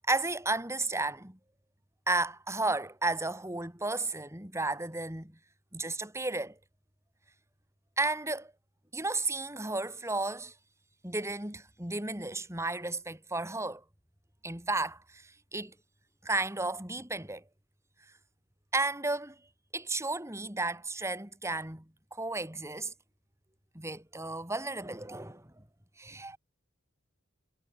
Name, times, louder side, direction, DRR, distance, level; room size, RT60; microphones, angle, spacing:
voice 1, 0.1-1.4 2.1-5.4 5.7-6.6 8.0-8.5 8.9-10.5 11.0-13.8 14.4-15.7 16.2-17.4 18.7-19.4 19.7-21.9 22.1-22.9 23.7-25.6 26.0-26.4, right 2 dB, 15° right, 4.0 m, -33 dB
head